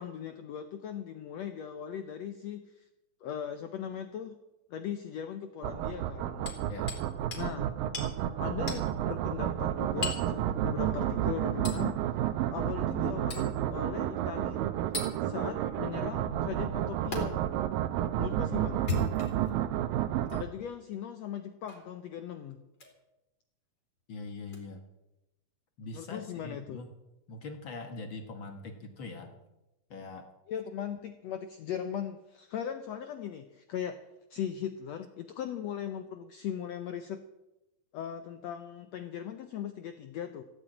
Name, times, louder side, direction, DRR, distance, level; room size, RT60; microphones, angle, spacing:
voice 1, 0.0-2.8 3.2-4.4 4.7-6.5 7.4-7.7 8.4-12.0 12.5-14.6 15.2-17.5 18.2-18.9 20.3-22.6 25.9-26.8 30.5-34.0 34.3-37.2 37.9-40.4, left 9 dB, 85° left, 8 dB, 1.5 m, -39 dB
sound 1, 5.6-20.4, right 11 dB, 80° right, 2.5 m, -31 dB
Hammer, 6.5-7.1 7.3-7.5 7.9-8.1 8.7-8.9 10.0-10.3 11.7-11.8 13.3-13.5 14.9-15.1 17.1-17.2 18.7-19.5 20.3-20.4 21.7-21.9 22.7-22.9 24.5-24.6, left 4 dB, 30° left, 3.6 m, -36 dB
voice 2, 24.1-24.8 25.8-26.9 27.3-29.4 29.9-30.3, left 3 dB, 60° left, 5 dB, 1.2 m, -42 dB
15.5 x 9.0 x 8.8 m, 0.95 s
omnidirectional pair, 4.1 m